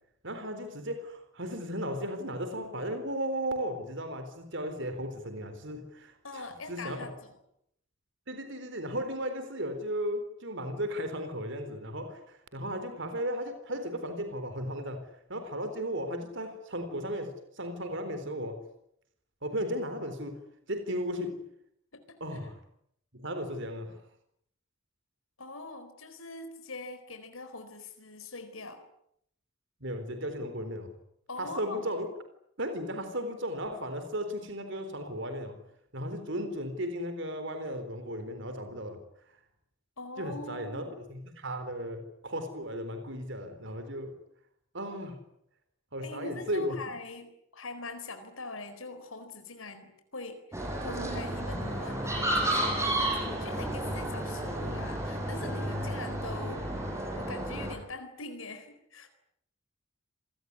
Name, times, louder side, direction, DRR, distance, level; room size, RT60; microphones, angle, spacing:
voice 1, 0.2-7.0 8.3-18.6 19.4-20.4 20.7-21.5 22.2-22.6 23.1-24.0 29.8-30.9 31.4-32.1 32.6-35.6 35.9-39.0 40.2-44.2 44.7-45.2 45.9-46.8, equal, 60° right, 4.1 m, -35 dB
voice 2, 6.2-7.3 21.9-22.0 25.4-28.8 31.3-31.8 40.0-41.0 46.0-56.6 57.1-59.1, left 3 dB, 85° left, 4.3 m, -43 dB
sound 1, 50.5-57.7, right 1 dB, 15° right, 7.4 m, -32 dB
27.5 x 20.0 x 9.7 m
head